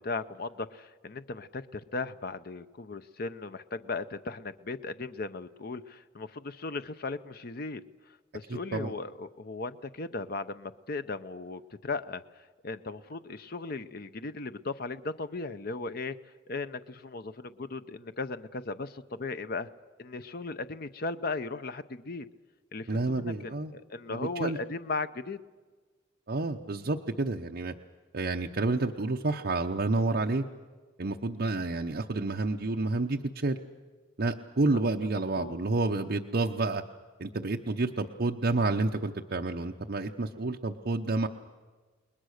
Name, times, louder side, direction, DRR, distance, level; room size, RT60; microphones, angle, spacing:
voice 1, 0.0-7.8 8.1-16.2 16.5-19.7 20.0-22.3 22.7-25.4 35.4-35.6, left 3 dB, 50° left, 12 dB, 0.7 m, -37 dB
voice 2, 8.5-8.9 22.9-23.7 24.1-24.6 26.3-27.7 28.1-30.4 31.0-33.6 34.2-36.8 37.2-41.3, right 2 dB, 50° right, 2 dB, 0.8 m, -29 dB
29.5 x 20.5 x 6.5 m, 1.4 s
head